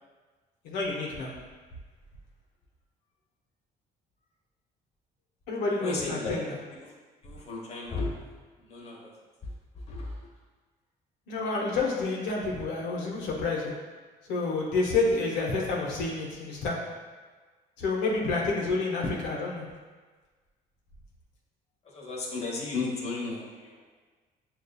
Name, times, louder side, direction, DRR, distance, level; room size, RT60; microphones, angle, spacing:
voice 1, 0.6-1.3 5.5-6.6 11.3-13.7 14.3-16.8 17.8-19.7, left 3 dB, 90° left, -3 dB, 0.7 m, -29 dB
voice 2, 5.8-6.4 6.8-6.9 7.2-8.1 8.6-9.1 9.9-10.3 21.8-23.8, left 3 dB, 40° left, -3 dB, 1.0 m, -34 dB
6.5 x 2.3 x 2.2 m, 1.4 s
cardioid pair, 110°, 17 cm